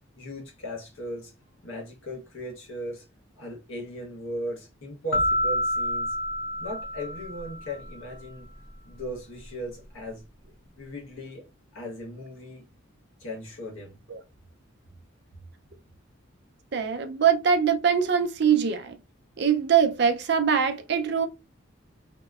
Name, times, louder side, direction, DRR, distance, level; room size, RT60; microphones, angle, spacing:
voice 1, 0.2-1.3 1.6-3.1 3.4-6.1 6.6-8.5 8.8-10.3 10.8-12.7 13.2-14.0, equal, 85° left, 1.2 m, -38 dB
sound 1, 5.1-7.9, left 1 dB, 50° left, 0.7 m, -28 dB
voice 2, 16.7-18.9 19.4-21.3, right 7 dB, 55° right, 0.4 m, -23 dB
2.8 x 2.0 x 2.3 m
head